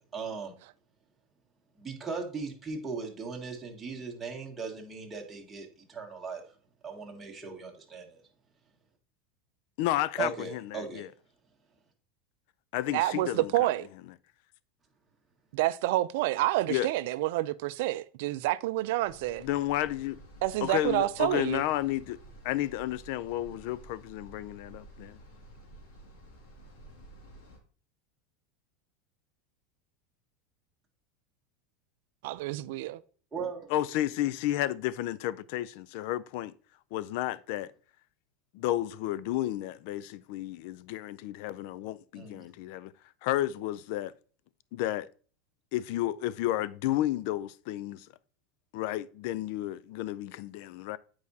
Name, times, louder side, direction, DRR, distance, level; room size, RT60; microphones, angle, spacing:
voice 1, 0.1-0.5 1.8-6.4 6.8-8.2 10.2-11.0 33.3-33.7 42.1-42.4, right 5 dB, 15° right, 1.5 m, -38 dB
voice 2, 9.8-11.1 12.7-13.5 16.7-16.9 19.4-20.2 20.6-22.2 22.4-25.2 33.7-36.5 36.9-37.7 38.5-42.9 43.2-44.1 44.7-45.1 45.7-48.1 48.7-51.0, left 14 dB, 65° left, 0.3 m, -32 dB
voice 3, 12.9-13.9 15.5-19.5 20.4-21.6 32.2-33.0, right 16 dB, 70° right, 0.4 m, -28 dB
sound 1, 19.0-27.6, right 1 dB, 80° left, 2.1 m, -52 dB
8.4 x 4.8 x 2.7 m
supercardioid pair, 135°, 0 cm